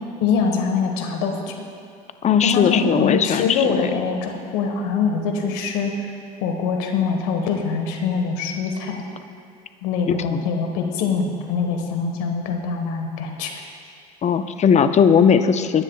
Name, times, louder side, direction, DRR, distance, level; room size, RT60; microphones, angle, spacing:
voice 1, 0.2-1.5 2.4-6.0 6.4-9.0 9.8-13.5, left 5 dB, 75° left, 3 dB, 1.5 m, -23 dB
voice 2, 2.2-3.9 10.3-10.5 14.2-15.8, left 7 dB, 35° left, 10 dB, 0.7 m, -18 dB
21.5 x 9.8 x 2.4 m, 2.3 s
hypercardioid pair, 75°, 20 cm